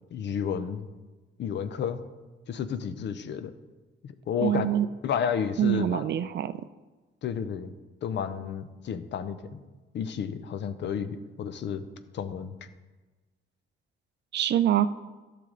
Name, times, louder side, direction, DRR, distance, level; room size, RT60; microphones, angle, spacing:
voice 1, 0.1-0.9 1.4-2.0 2.5-3.5 4.0-4.7 5.0-6.0 7.2-7.7 8.0-9.6 9.9-11.9 12.1-12.5, left 7 dB, 65° left, 11 dB, 0.7 m, -31 dB
voice 2, 4.4-4.9 5.6-6.7 14.3-14.9, right 11 dB, 60° right, 14 dB, 0.5 m, -25 dB
12.0 x 6.8 x 3.8 m, 1.2 s
cardioid pair, 90°, 20 cm